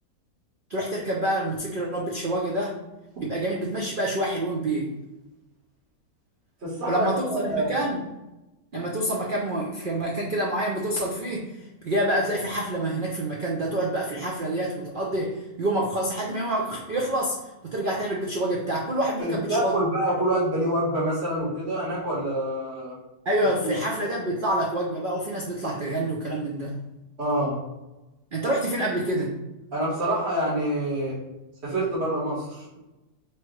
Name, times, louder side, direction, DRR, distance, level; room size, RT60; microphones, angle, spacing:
voice 1, 0.7-2.8 3.2-5.0 6.9-8.0 8.7-17.4 17.6-19.7 23.2-26.8 28.3-29.3, right 1 dB, 75° right, -2 dB, 0.4 m, -27 dB
voice 2, 6.6-7.8 19.2-22.9 23.6-23.7 27.2-27.6 29.7-31.2 31.6-32.8, right 1 dB, 40° right, -8 dB, 1.6 m, -26 dB
4.6 x 3.1 x 3.1 m, 1.0 s
omnidirectional pair, 1.7 m